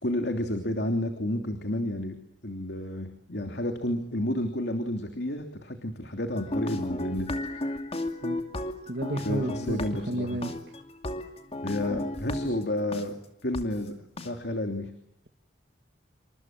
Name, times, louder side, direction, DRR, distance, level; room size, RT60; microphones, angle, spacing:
voice 1, 0.0-7.3 9.2-10.4 11.6-14.9, left 1 dB, 60° left, 6 dB, 3.1 m, -31 dB
sound 1, 6.3-13.0 13.5-13.6 14.2-14.3, left 1 dB, 30° left, 2.5 m, -34 dB
voice 2, 8.9-10.5, right 1 dB, 60° right, 4 dB, 2.2 m, -32 dB
28.5 x 26.0 x 7.6 m, 0.77 s
head